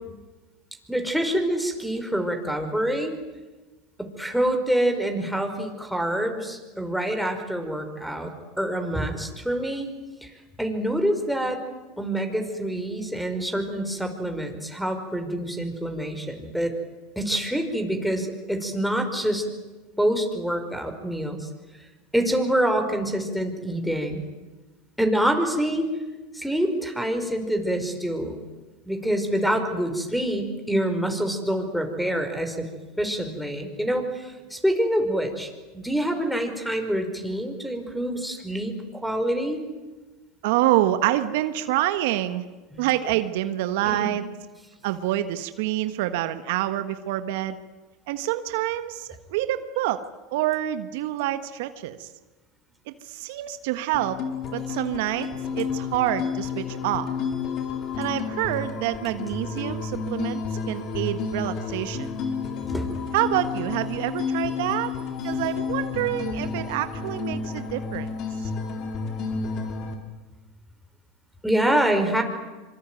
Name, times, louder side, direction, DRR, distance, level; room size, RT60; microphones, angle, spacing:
voice 1, 0.9-3.2 4.0-8.3 8.6-9.9 10.2-10.3 10.6-11.6 12.0-16.8 17.2-19.5 20.0-21.5 22.1-24.3 25.0-25.9 26.3-28.4 28.8-32.7 33.0-39.6 42.7-42.9 43.9-44.2 62.7-62.9 71.4-72.2, right 1 dB, ahead, 4 dB, 5.3 m, -26 dB
voice 2, 40.4-42.4 42.8-44.2 44.8-47.6 48.1-50.0 50.3-52.1 52.9-54.2 54.5-55.3 55.6-57.1 58.0-60.4 60.7-62.1 63.1-64.9 65.2-68.1 68.4-68.5, right 14 dB, 70° right, 10 dB, 1.5 m, -27 dB
sound 1, 53.9-69.9, left 5 dB, 50° left, 4.4 m, -31 dB
25.5 x 25.0 x 9.4 m, 1.2 s
hypercardioid pair, 100°, 0 cm